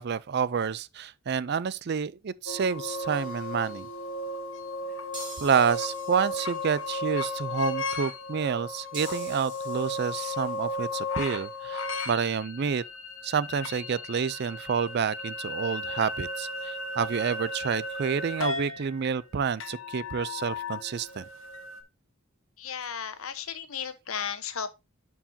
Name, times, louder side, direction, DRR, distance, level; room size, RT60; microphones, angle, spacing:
voice 1, 0.0-3.9 5.4-12.8 13.2-21.2, right 6 dB, 50° right, 0.4 m, -29 dB
sound 1, 2.5-21.8, left 2 dB, 65° left, 1.3 m, -35 dB
sound 2, 3.1-4.0 5.1-7.0 8.9-10.8, right 2 dB, 25° right, 4.0 m, -46 dB
voice 2, 22.6-24.7, left 7 dB, 80° left, 1.0 m, -35 dB
11.5 x 4.7 x 2.7 m
head